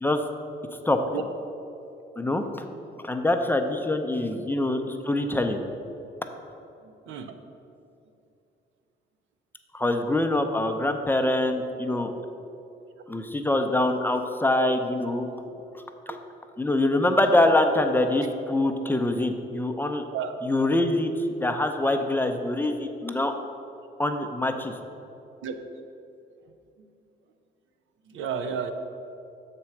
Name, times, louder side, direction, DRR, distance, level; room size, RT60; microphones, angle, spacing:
voice 1, 3.0-5.6 9.7-12.1 13.1-15.3 15.7-15.8 16.1-16.2 16.6-20.0 20.4-21.1 21.4-23.3 24.0-24.7, left 2 dB, 10° left, 5 dB, 0.5 m, -24 dB
voice 2, 6.8-7.3 11.2-11.3 14.6-14.7 16.1-16.2 17.7-17.8 20.1-20.3 20.6-20.7 25.4-25.6 28.1-28.7, right 7 dB, 80° right, 7 dB, 0.6 m, -33 dB
6.7 x 4.3 x 5.9 m, 2.7 s
cardioid pair, 90°, 20 cm